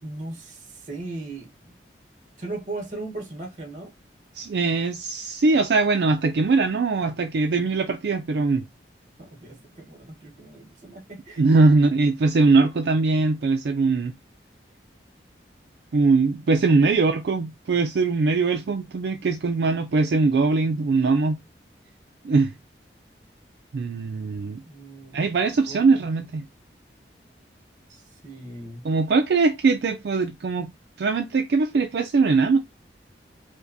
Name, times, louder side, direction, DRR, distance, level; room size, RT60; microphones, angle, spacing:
voice 1, 0.0-1.7 2.4-3.9 9.2-11.6 16.4-16.6 16.8-17.0 24.6-26.1 27.9-28.9, right 2 dB, 45° right, 1.2 m, -38 dB
voice 2, 4.3-8.6 11.4-14.1 15.9-21.4 22.2-22.5 23.7-24.6 25.1-26.4 28.8-30.7 31.0-32.6, right 3 dB, 70° right, 0.4 m, -21 dB
4.9 x 2.2 x 2.7 m
head